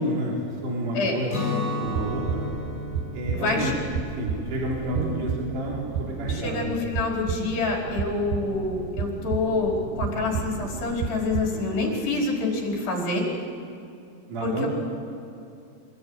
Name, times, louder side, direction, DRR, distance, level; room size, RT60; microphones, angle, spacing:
voice 1, 0.0-2.5 3.1-3.7 4.2-6.7 11.5-11.6 14.3-14.7, right 1 dB, 50° right, -2 dB, 5.3 m, -30 dB
Guitar, 1.3-7.1, left 3 dB, 15° left, 5.2 m, -35 dB
sound 1, 1.8-11.5, right 7 dB, 75° right, 2.0 m, -32 dB
voice 2, 3.3-3.7 6.3-13.3 14.4-14.7, left 3 dB, 70° left, -1 dB, 6.8 m, -27 dB
26.5 x 20.5 x 9.8 m, 2.6 s
omnidirectional pair, 4.8 m